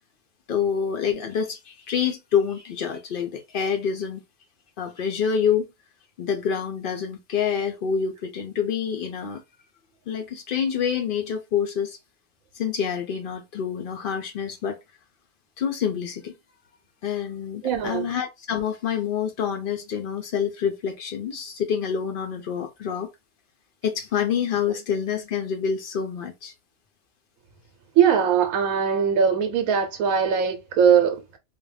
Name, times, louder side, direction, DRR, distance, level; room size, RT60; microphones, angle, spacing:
voice 1, 0.5-4.2 4.8-5.7 6.2-9.4 10.1-12.0 12.5-14.8 15.6-16.3 17.0-23.1 23.8-26.5, left 7 dB, 70° left, 0.5 m, -27 dB
voice 2, 17.6-18.1 28.0-31.4, right 7 dB, 75° right, 1.0 m, -21 dB
2.5 x 2.1 x 3.2 m
omnidirectional pair, 1.5 m